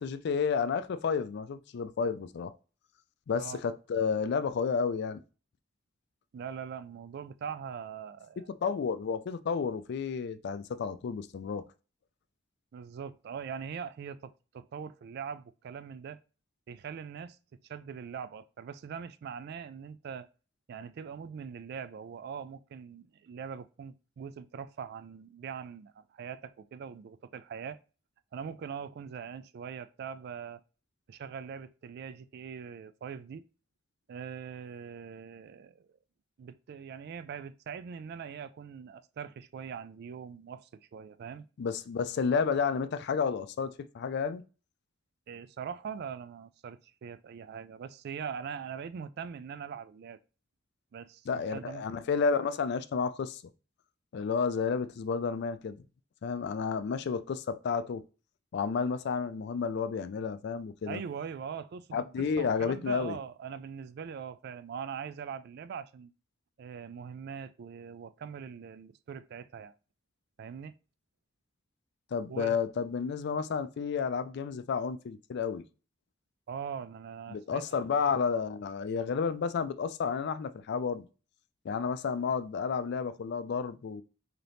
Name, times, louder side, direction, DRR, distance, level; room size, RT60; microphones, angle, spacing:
voice 1, 0.0-2.5 3.3-5.2 8.6-11.6 41.6-44.4 51.3-53.4 54.1-55.8 56.2-58.0 58.5-61.0 61.9-63.2 72.1-75.6 77.3-81.1 81.6-84.0, left 5 dB, 60° left, 0.3 m, -31 dB
voice 2, 6.3-8.5 12.7-16.2 16.7-17.4 17.7-20.3 20.7-27.8 28.3-30.6 31.1-33.5 34.1-35.9 36.4-41.5 45.3-50.2 50.9-51.8 60.9-62.0 62.4-66.1 66.6-69.7 70.4-70.7 72.3-72.6 76.5-77.6 78.0-78.2, right 7 dB, 55° right, 0.3 m, -42 dB
3.9 x 2.9 x 3.3 m
head